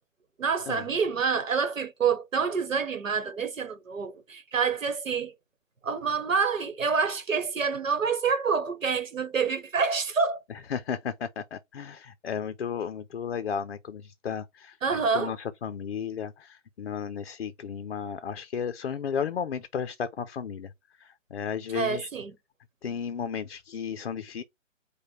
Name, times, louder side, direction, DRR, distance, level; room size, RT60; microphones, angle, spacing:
voice 1, 0.4-5.3 5.8-10.4 14.8-15.4 21.7-22.4, right 5 dB, 80° right, 1.1 m, -27 dB
voice 2, 10.7-20.7 21.0-22.1 22.8-24.4, left 7 dB, 50° left, 0.5 m, -34 dB
4.9 x 2.2 x 4.2 m
figure-of-eight pair, 150°, 39 cm